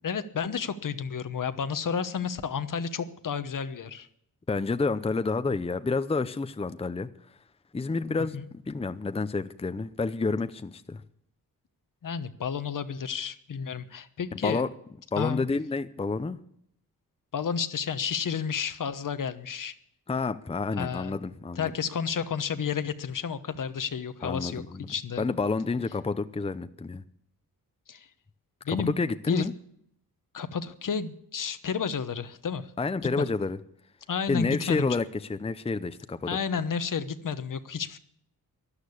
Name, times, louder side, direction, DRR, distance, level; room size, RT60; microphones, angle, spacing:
voice 1, 0.0-4.1 8.3-8.4 12.0-14.6 15.1-15.5 17.3-19.7 20.8-21.2 21.6-25.3 27.9-28.1 28.6-28.9 29.3-29.4 30.3-32.7 33.2-33.3 34.1-34.9 36.3-38.0, left 6 dB, 60° left, 12 dB, 1.1 m, -31 dB
voice 2, 4.5-7.1 7.7-8.4 8.7-11.0 14.4-14.7 15.1-16.4 20.1-21.7 24.2-27.0 28.7-29.5 32.8-33.6 34.3-36.4, left 3 dB, 15° left, 12 dB, 0.6 m, -29 dB
13.0 x 11.5 x 8.4 m, 0.72 s
wide cardioid pair, 105°, 37 cm